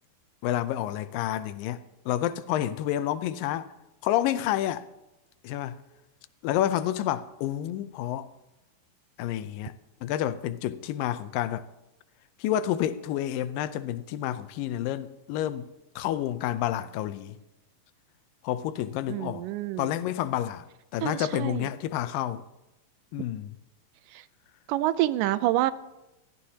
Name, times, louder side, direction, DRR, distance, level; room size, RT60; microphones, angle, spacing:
voice 1, 0.4-3.7 4.0-4.8 5.4-5.8 6.4-8.3 9.2-9.7 10.0-11.7 12.4-15.6 16.0-17.4 18.4-19.5 19.8-20.6 20.9-22.4 23.1-23.6, left 12 dB, 90° left, 2.4 m, -29 dB
voice 2, 19.1-19.9 21.0-21.7 24.1-24.3 24.7-25.7, right 15 dB, 80° right, 2.1 m, -27 dB
21.0 x 15.0 x 2.9 m
omnidirectional pair, 3.9 m